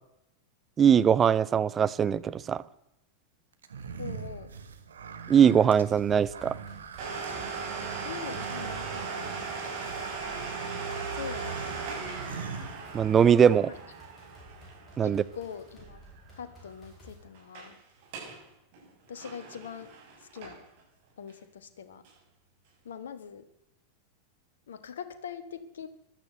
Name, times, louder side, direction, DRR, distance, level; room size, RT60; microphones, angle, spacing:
voice 1, 0.8-2.6 5.3-6.6 12.9-13.7 15.0-15.2, right 8 dB, 25° right, 16 dB, 0.6 m, -21 dB
sound 1, 3.6-13.3, right 5 dB, 70° right, 1.5 m, -43 dB
voice 2, 4.0-4.5 8.0-9.5 11.1-11.8 13.6-13.8 15.0-16.0 16.3-17.8 19.1-19.9 20.2-20.6 21.2-22.0 22.8-23.5 24.7-25.9, left 7 dB, 65° left, 12 dB, 1.5 m, -42 dB
sound 2, 5.9-17.2, equal, 15° left, 6.6 m, -54 dB
Domestic sounds home sounds, 7.0-16.4 16.7-16.8 17.3-17.7 18.0-18.4 18.7-20.8 21.3-21.4 22.0-22.1, right 5 dB, 50° right, 6.8 m, -38 dB
15.0 x 12.0 x 8.0 m, 0.82 s
figure-of-eight pair, 90°, 0 cm